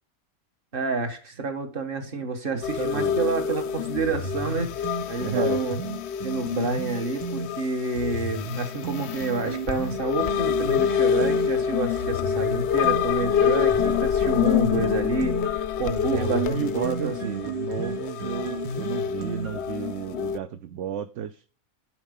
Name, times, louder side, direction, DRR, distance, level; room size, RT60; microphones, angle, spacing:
voice 1, 0.7-5.8 6.2-17.1, right 4 dB, 40° right, 1.5 m, -29 dB
voice 2, 2.5-3.2 5.2-5.6 16.1-21.4, right 10 dB, 65° right, 0.8 m, -32 dB
sound 1, 2.6-20.4, left 8 dB, 65° left, 0.7 m, -27 dB
sound 2, 4.0-7.5 8.0-11.5 12.0-19.8, right 3 dB, 80° right, 2.2 m, -34 dB
10.5 x 4.4 x 5.3 m
omnidirectional pair, 1.5 m